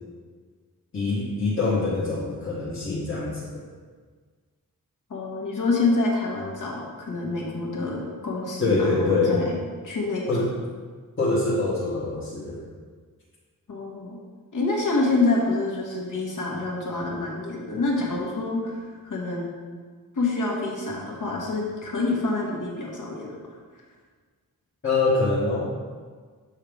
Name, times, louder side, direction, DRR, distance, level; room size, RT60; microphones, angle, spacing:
voice 1, 0.9-3.4 8.6-9.4 10.3-10.5 11.2-12.6 24.8-25.7, left 3 dB, 35° left, -7 dB, 1.1 m, -24 dB
voice 2, 5.1-9.5 9.8-10.3 13.7-14.2 14.5-19.5 20.1-23.5, left 3 dB, 60° left, -2 dB, 1.4 m, -27 dB
6.3 x 5.6 x 3.5 m, 1.6 s
wide cardioid pair, 115°, 35 cm